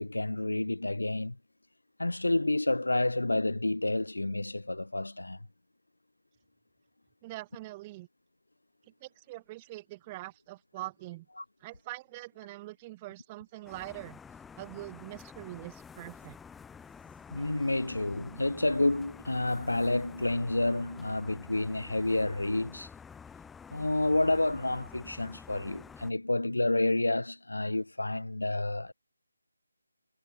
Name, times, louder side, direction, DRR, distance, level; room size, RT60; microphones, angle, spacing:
voice 1, 0.0-1.4 2.0-5.4 11.4-11.5 17.3-22.9 23.7-28.9, left 2 dB, 80° left, 1.4 m, -29 dB
voice 2, 7.2-8.1 9.0-11.3 11.6-14.2 14.6-16.4, right 19 dB, 20° right, 7.8 m, -43 dB
sound 1, 13.6-26.1, left 6 dB, 5° left, 4.2 m, -49 dB
figure-of-eight pair, 160°, 0 cm